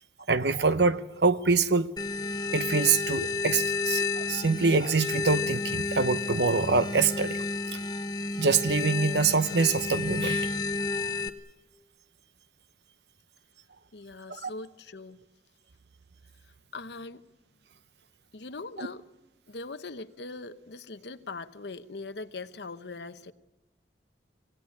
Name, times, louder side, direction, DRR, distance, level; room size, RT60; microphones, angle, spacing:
voice 1, 0.3-1.9 2.5-7.4 8.4-10.5 14.3-14.5 18.8-18.9, right 4 dB, 65° right, 0.9 m, -25 dB
sound 1, 2.0-11.3, left 3 dB, 25° left, 1.0 m, -31 dB
voice 2, 13.9-15.2 16.7-17.2 18.3-19.1 19.5-23.3, left 3 dB, 70° left, 1.0 m, -41 dB
26.5 x 18.0 x 8.7 m
head